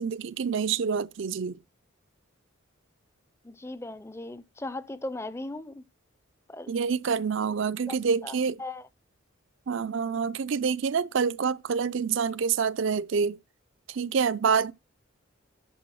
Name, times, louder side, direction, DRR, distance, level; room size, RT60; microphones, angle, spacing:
voice 1, 0.0-1.6 6.7-8.6 9.7-13.4 13.9-14.7, right 6 dB, 65° right, 0.5 m, -27 dB
voice 2, 3.4-5.8 6.5-6.7 7.9-8.0 8.2-8.9, left 2 dB, 10° left, 0.5 m, -38 dB
10.5 x 3.9 x 6.2 m
head